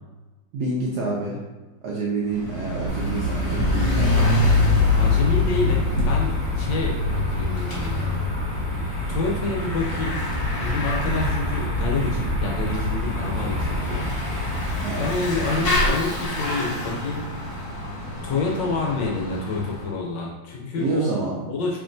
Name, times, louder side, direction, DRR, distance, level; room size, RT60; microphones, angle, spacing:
voice 1, 0.5-1.4 1.8-4.5 14.8-15.1 20.8-21.4, right 3 dB, 75° right, -3 dB, 0.9 m, -28 dB
Bicycle / Mechanisms, 2.3-19.9, left 2 dB, 50° left, 1.2 m, -26 dB
sound 1, 2.9-15.9, left 1 dB, 15° right, 0.5 m, -28 dB
voice 2, 5.0-8.2 9.1-10.2 10.6-14.1 15.0-17.3 18.2-21.1 21.5-21.8, left 3 dB, 75° left, -1 dB, 1.1 m, -28 dB
4.5 x 2.9 x 2.5 m, 1.2 s
omnidirectional pair, 2.3 m